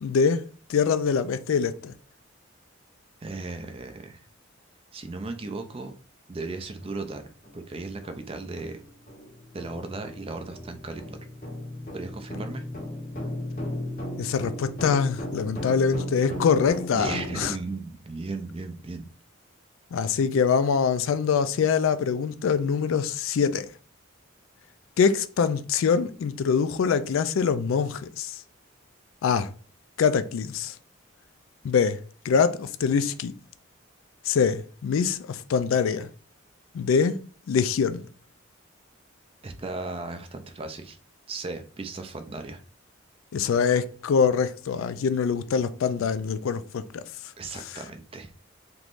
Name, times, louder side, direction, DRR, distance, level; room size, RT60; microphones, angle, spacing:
voice 1, 0.0-0.4 0.7-1.9 14.2-17.5 19.9-23.7 25.0-28.4 29.2-29.5 30.0-30.7 31.6-32.0 32.2-33.3 34.3-36.1 36.7-37.2 37.5-38.0 43.3-47.0, left 6 dB, 70° left, 0.3 m, -24 dB
voice 2, 3.2-4.2 4.9-5.9 6.3-8.8 9.5-11.3 11.9-12.7 16.9-19.1 39.4-41.0 41.3-42.6 47.4-48.3, right 3 dB, 25° right, 0.4 m, -36 dB
sound 1, 6.8-6.9 7.4-7.6 8.0-17.5, equal, 45° left, 1.2 m, -36 dB
3.5 x 3.0 x 2.5 m
head